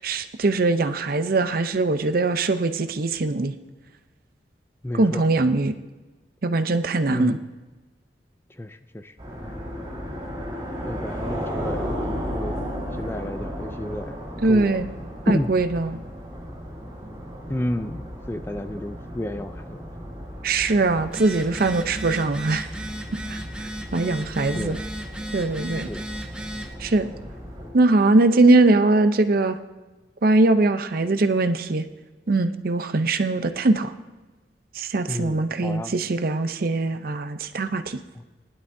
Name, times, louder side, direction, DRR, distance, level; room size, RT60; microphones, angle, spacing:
voice 1, 0.0-3.5 5.0-5.7 6.4-7.4 14.4-14.9 15.3-16.0 20.4-22.7 23.3-23.4 23.9-24.8 25.3-25.9 26.8-27.1 27.7-29.6 30.2-31.8 32.3-33.9 34.7-38.0, right 2 dB, 55° right, 9 dB, 0.6 m, -21 dB
voice 2, 4.8-5.3 7.1-7.4 8.5-9.1 9.4-9.5 10.8-14.8 15.3-15.5 17.5-19.9 24.6-24.9 25.9-26.1 35.1-36.0 38.1-38.2, left 1 dB, 15° left, 9 dB, 0.4 m, -31 dB
sound 1, 9.2-27.7, equal, 25° right, 4.5 m, -35 dB
Telephone, 21.0-26.7, right 1 dB, 5° right, 1.0 m, -35 dB
19.0 x 11.0 x 2.7 m, 1.2 s
head